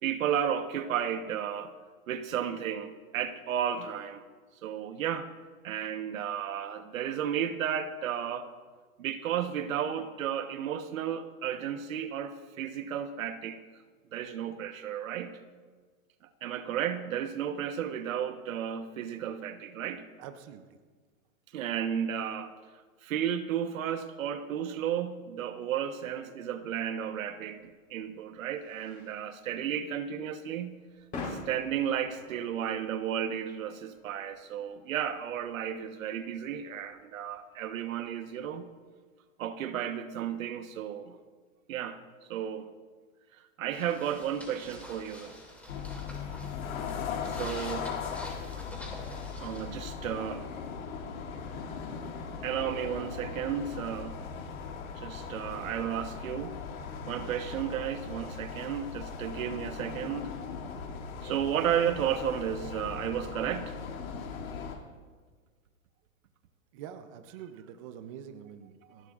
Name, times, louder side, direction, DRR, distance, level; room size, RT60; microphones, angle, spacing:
voice 1, 0.0-1.7 2.1-4.2 4.6-5.3 5.6-8.5 9.0-13.6 14.1-15.4 16.4-20.0 21.5-22.6 23.0-30.8 31.3-38.7 39.4-41.2 41.7-42.0 42.3-42.7 43.3-45.3 47.3-48.0 48.2-48.3 49.4-50.5 52.0-52.2 52.4-54.2 55.0-56.6 57.1-60.3 61.2-63.8 68.9-69.0, right 9 dB, 70° right, 1.2 m, -33 dB
voice 2, 20.2-20.6 66.7-69.1, right 9 dB, 25° right, 0.5 m, -45 dB
sound 1, 27.2-38.5, left 3 dB, 20° left, 3.9 m, -48 dB
sound 2, 43.7-49.7, left 1 dB, 5° left, 2.2 m, -47 dB
sound 3, 45.7-64.8, left 6 dB, 80° left, 2.5 m, -39 dB
30.0 x 11.0 x 2.5 m
hypercardioid pair, 155°, 41 cm